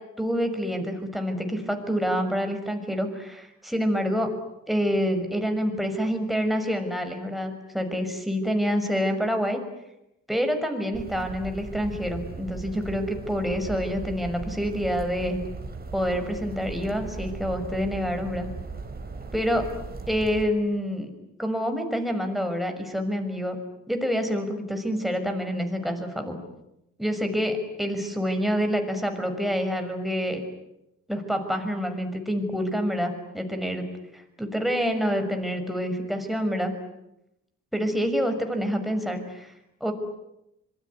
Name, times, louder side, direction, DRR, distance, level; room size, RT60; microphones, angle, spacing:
voice 1, 0.2-4.3 4.7-9.6 10.3-15.4 15.9-18.5 19.3-19.6 20.1-21.1 21.4-23.6 23.9-26.4 27.0-30.4 31.1-33.9 34.1-36.7 37.7-39.5 39.8-39.9, equal, ahead, 5 dB, 6.2 m, -27 dB
sound 1, 10.9-20.5, right 4 dB, 30° right, 4.4 m, -38 dB
26.0 x 23.0 x 9.8 m, 0.88 s
cardioid pair, 90°, 30 cm